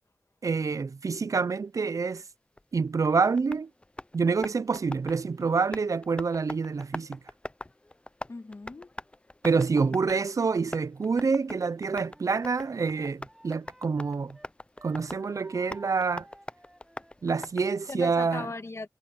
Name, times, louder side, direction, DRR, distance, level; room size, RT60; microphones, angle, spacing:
voice 1, 0.4-2.2 2.7-3.7 4.1-7.2 9.4-14.4 14.8-16.3 17.2-18.5, right 4 dB, 60° right, 0.5 m, -27 dB
Tap, 2.6-18.1, left 1 dB, 15° left, 0.5 m, -44 dB
voice 2, 8.3-8.9 9.5-10.0 17.9-18.9, left 3 dB, 45° left, 2.0 m, -39 dB
Wind instrument woodwind instrument, 11.9-14.5 14.8-17.5, equal, 5° right, 5.9 m, -55 dB
wide cardioid pair, 75°, 6 cm